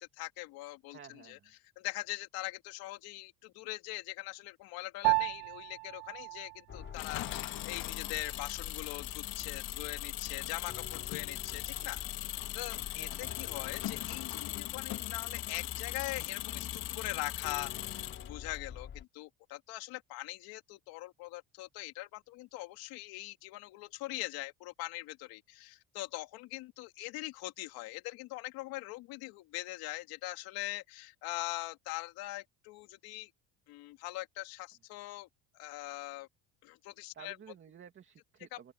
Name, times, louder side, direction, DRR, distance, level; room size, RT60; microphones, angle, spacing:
voice 1, 0.0-1.4 1.8-33.3 33.7-35.3 35.5-36.3 36.6-37.4 38.5-38.6, left 19 dB, 85° left, 2.7 m, -42 dB
voice 2, 0.9-1.5 13.0-13.2 37.1-38.7, right 8 dB, 35° right, 2.8 m, -53 dB
Piano, 5.0-14.7, right 31 dB, 80° right, 0.6 m, -39 dB
sound 1, 6.7-19.0, left 8 dB, 35° left, 6.0 m, -47 dB
Engine, 6.9-18.6, left 16 dB, 70° left, 2.1 m, -40 dB
open air
cardioid pair, 160°, 36 cm